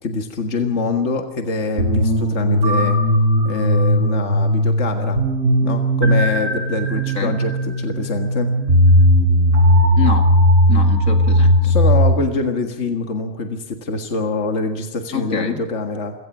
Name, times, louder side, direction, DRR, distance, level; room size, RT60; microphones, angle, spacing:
voice 1, 0.0-3.0 3.4-5.2 5.6-8.5 11.6-16.1, left 4 dB, 60° left, 4 dB, 2.0 m, -24 dB
sound 1, 1.8-12.1, equal, 70° right, 4.8 m, -16 dB
voice 2, 10.0-10.3 10.7-11.7 15.1-15.6, left 6 dB, 80° left, 4 dB, 2.6 m, -26 dB
28.0 x 17.0 x 6.2 m, 0.93 s
omnidirectional pair, 1.4 m